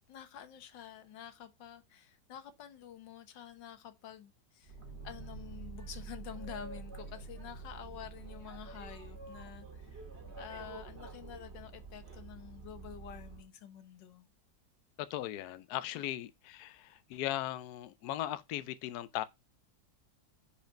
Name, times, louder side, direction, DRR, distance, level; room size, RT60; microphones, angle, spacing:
voice 1, 0.1-4.7 5.0-10.0 10.4-14.3, left 9 dB, 85° left, 1.7 m, -49 dB
Boat Water vehicle, 4.6-13.5, right 4 dB, 40° right, 1.9 m, -47 dB
voice 2, 15.0-19.2, left 13 dB, 70° left, 1.0 m, -38 dB
5.2 x 5.1 x 5.1 m
omnidirectional pair, 1.9 m